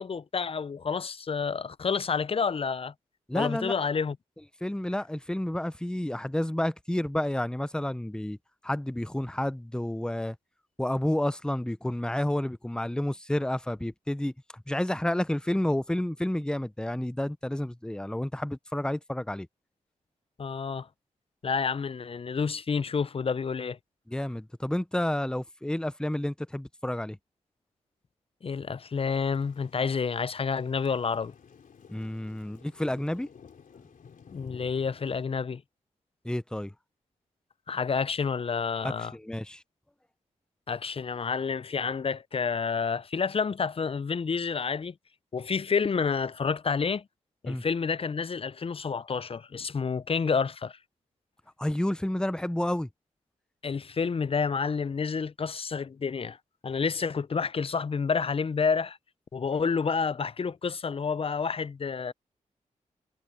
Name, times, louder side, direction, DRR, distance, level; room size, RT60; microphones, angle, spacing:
voice 1, 0.0-2.9 3.3-4.2 20.4-20.9 21.4-23.8 28.4-31.3 34.3-35.6 37.7-39.1 40.7-44.9 45.3-47.0 47.4-50.8 53.6-56.4 56.6-59.0 59.3-62.1, left 5 dB, 40° left, 0.6 m, -29 dB
voice 2, 3.3-3.7 4.6-8.4 8.6-10.4 10.8-19.5 24.1-27.2 31.9-33.3 36.2-36.7 38.8-39.6 47.4-47.6 51.6-52.9, left 1 dB, 5° left, 0.8 m, -30 dB
Thunder / Rain, 28.9-35.2, left 6 dB, 70° left, 3.3 m, -53 dB
supercardioid pair, 45°, 14 cm